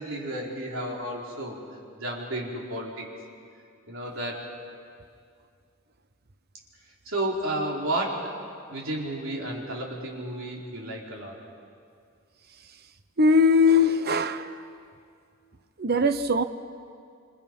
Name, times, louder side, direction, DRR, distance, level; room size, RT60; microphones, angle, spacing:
voice 1, 0.0-1.6 2.0-3.1 3.9-4.5 7.0-8.4 8.7-11.4, right 1 dB, 65° right, -2 dB, 4.3 m, -32 dB
voice 2, 13.2-14.5 15.8-16.4, left 3 dB, 45° right, 10 dB, 0.9 m, -20 dB
27.5 x 26.5 x 5.4 m, 2.3 s
head